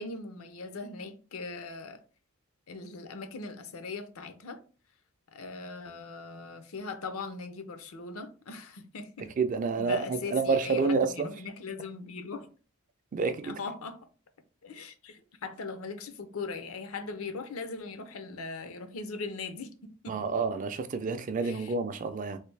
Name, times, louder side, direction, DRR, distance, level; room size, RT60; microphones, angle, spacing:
voice 1, 0.0-2.0 2.7-4.6 5.3-9.3 9.8-12.5 13.2-14.0 14.6-20.3 21.4-21.7, left 4 dB, 70° left, 0.5 m, -40 dB
voice 2, 9.4-11.3 13.1-13.5 20.1-22.4, right 4 dB, 35° right, 0.3 m, -29 dB
3.2 x 2.6 x 3.3 m
head